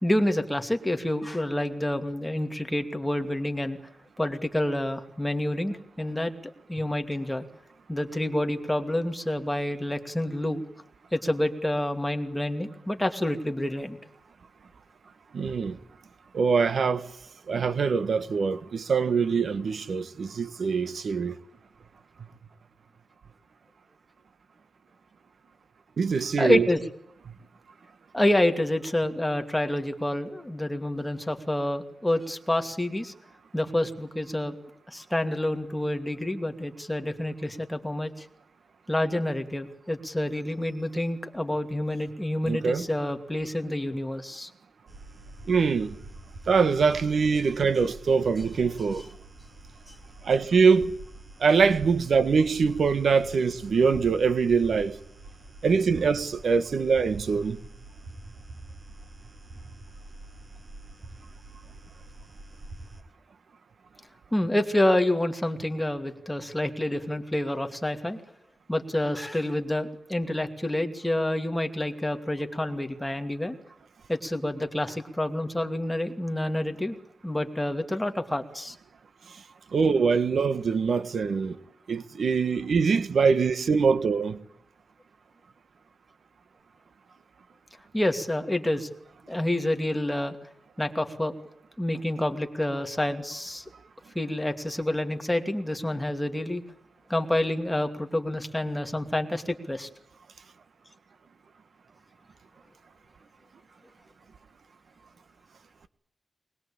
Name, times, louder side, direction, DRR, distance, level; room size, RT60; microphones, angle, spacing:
voice 1, 0.0-3.8 4.2-6.3 6.7-7.5 7.9-10.6 11.1-14.0 26.4-26.8 28.1-33.1 33.5-38.3 38.9-44.5 49.9-50.0 64.3-68.2 68.7-73.6 74.1-77.0 77.2-78.7 87.9-88.9 89.2-90.4 90.8-91.3 91.8-93.6 94.1-96.6 97.1-99.9, left 1 dB, 10° left, 2.6 m, -28 dB
voice 2, 15.3-15.8 16.3-17.1 17.5-21.4 26.0-26.7 42.4-42.9 45.4-46.0 46.5-49.1 50.2-50.9 51.4-55.0 55.6-57.6 79.3-79.4 79.7-81.6 81.9-84.4, right 5 dB, 75° right, 1.5 m, -23 dB
sound 1, 44.9-63.0, right 2 dB, 45° right, 5.7 m, -46 dB
24.0 x 21.0 x 8.8 m
wide cardioid pair, 95°, 0 cm